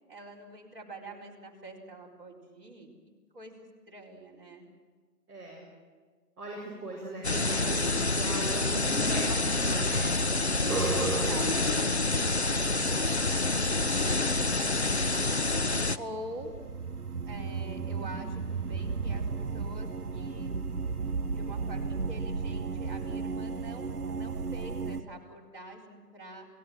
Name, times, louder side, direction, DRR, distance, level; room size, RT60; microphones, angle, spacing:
voice 1, 0.1-2.9 3.3-4.7 7.0-7.1 11.0-12.1 12.3-15.2 15.9-16.5 17.3-20.5 21.3-26.5, right 1 dB, 35° right, -4 dB, 4.3 m, -46 dB
voice 2, 5.3-5.6 6.4-10.1 10.5-11.5, right 2 dB, 10° right, -11 dB, 4.5 m, -39 dB
sound 1, 7.2-16.0, left 2 dB, 45° left, 0.6 m, -27 dB
sound 2, 10.7-11.8 15.6-25.0, right 4 dB, 65° right, 1.4 m, -34 dB
30.0 x 17.5 x 7.6 m, 1.5 s
figure-of-eight pair, 170°, 49 cm